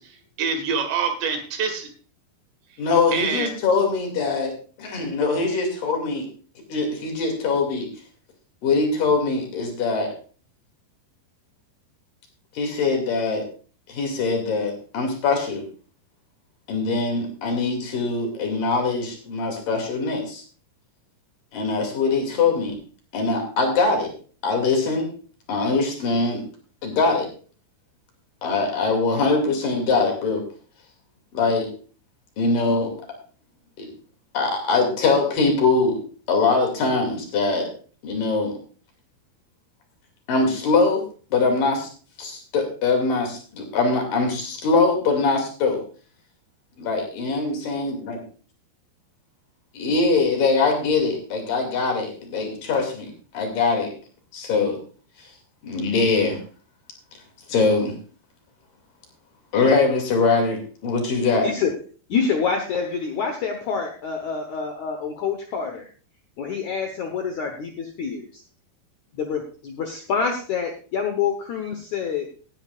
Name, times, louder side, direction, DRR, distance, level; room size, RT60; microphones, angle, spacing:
voice 1, 0.0-1.9 3.1-3.5, right 5 dB, 70° right, 6 dB, 3.8 m, -26 dB
voice 2, 2.8-4.5 4.8-6.3 6.7-7.9 8.6-10.1 12.5-13.5 13.9-15.6 16.7-20.4 21.5-22.8 23.1-24.1 24.4-25.1 25.5-26.4 26.8-27.3 28.4-30.4 31.3-31.7 32.4-32.9 33.8-33.9 34.3-36.0 36.3-37.7 38.0-38.6 40.3-41.0 41.3-41.9 42.2-45.8 46.8-48.2 49.7-53.9 54.3-54.8 55.6-56.4 57.5-57.9 59.5-61.5, left 4 dB, 50° left, 3 dB, 3.9 m, -22 dB
voice 3, 62.1-65.9 66.4-68.4 69.1-72.3, left 6 dB, 85° left, 4 dB, 1.6 m, -27 dB
18.0 x 10.5 x 2.5 m, 0.39 s
omnidirectional pair, 5.4 m